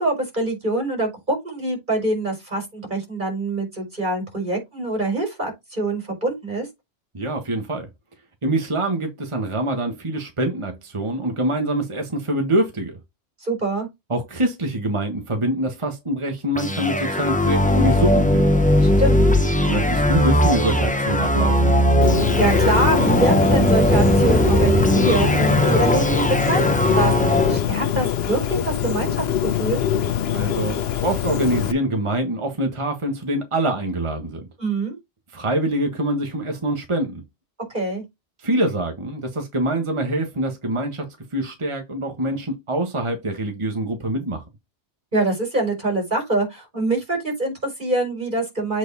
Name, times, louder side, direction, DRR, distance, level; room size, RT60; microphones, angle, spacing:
voice 1, 0.0-6.7 13.4-13.9 19.0-19.3 22.4-29.8 34.6-35.0 37.7-38.0 45.1-48.8, right 2 dB, 45° right, 4.8 m, -24 dB
voice 2, 7.1-7.9 8.4-13.0 14.1-18.5 19.7-21.7 30.3-34.5 35.3-37.2 38.4-41.1 41.3-44.4, right 1 dB, 25° right, 1.5 m, -25 dB
sound 1, 16.5-27.6, left 1 dB, 10° left, 0.6 m, -18 dB
sound 2, 17.6-25.4, right 7 dB, 85° right, 1.5 m, -33 dB
Bird, 22.0-31.7, left 10 dB, 65° left, 0.9 m, -24 dB
8.0 x 4.3 x 4.1 m
omnidirectional pair, 1.1 m